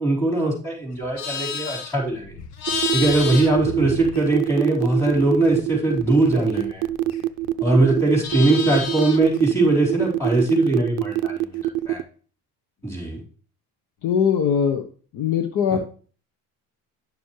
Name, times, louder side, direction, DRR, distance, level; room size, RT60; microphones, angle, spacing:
voice 1, 0.0-2.3 2.9-6.8 7.6-11.6 11.9-12.0 12.8-13.2 15.7-15.8, right 2 dB, 10° left, -5 dB, 4.3 m, -21 dB
Livestock farm animals working animals, 0.9-4.6 4.9-7.5 7.8-9.4, left 6 dB, 85° left, 1.3 m, -32 dB
sound 1, 2.7-12.0, right 15 dB, 60° right, 0.5 m, -24 dB
voice 2, 14.0-14.8 15.1-15.8, left 7 dB, 55° left, 7 dB, 1.0 m, -21 dB
10.5 x 6.9 x 3.2 m, 0.41 s
cardioid pair, 150°, 36 cm